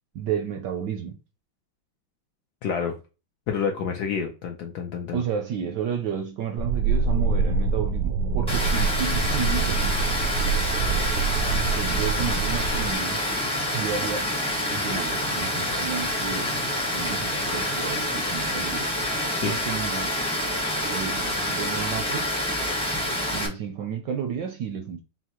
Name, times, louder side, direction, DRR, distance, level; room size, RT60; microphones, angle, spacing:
voice 1, 0.1-1.2 5.1-9.8 11.5-13.2 13.7-14.3 14.7-16.6 16.9-18.9 19.4-20.2 20.9-22.3 23.3-25.0, right 8 dB, 70° right, 1.0 m, -31 dB
voice 2, 2.6-3.0 3.5-5.2 19.4-19.6, left 6 dB, 70° left, 1.0 m, -28 dB
sound 1, 6.6-13.0, right 5 dB, 90° right, 1.5 m, -25 dB
Water, 8.5-23.5, left 1 dB, 5° left, 0.5 m, -27 dB
5.7 x 2.2 x 2.9 m
omnidirectional pair, 2.3 m